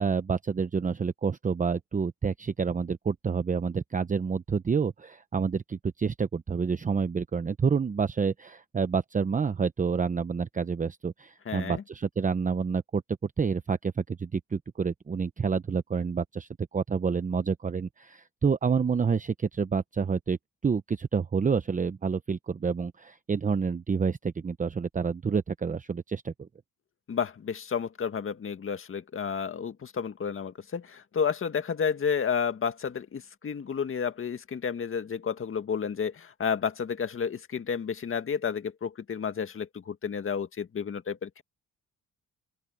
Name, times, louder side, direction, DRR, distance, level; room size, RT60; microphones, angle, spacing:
voice 1, 0.0-20.4 20.6-26.5, right 5 dB, 25° right, 0.8 m, -28 dB
voice 2, 11.5-11.8 27.1-41.4, left 6 dB, 45° left, 2.0 m, -31 dB
open air
cardioid pair, 90°, 30 cm